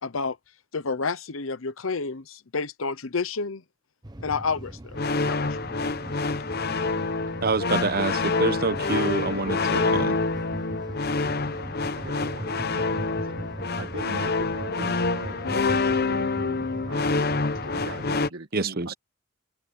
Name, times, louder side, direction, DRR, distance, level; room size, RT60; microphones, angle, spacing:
voice 1, 0.0-0.4 0.7-3.6 4.2-5.0, left 4 dB, 70° left, 0.9 m, -29 dB
sound 1, 4.0-18.3, right 1 dB, 20° right, 1.2 m, -39 dB
sound 2, 4.9-18.3, left 3 dB, 50° left, 0.9 m, -27 dB
voice 2, 7.4-10.2 18.5-18.9, right 3 dB, 45° right, 1.0 m, -26 dB
voice 3, 8.9-9.6 11.6-11.7 12.0-18.9, right 2 dB, 65° right, 1.7 m, -41 dB
head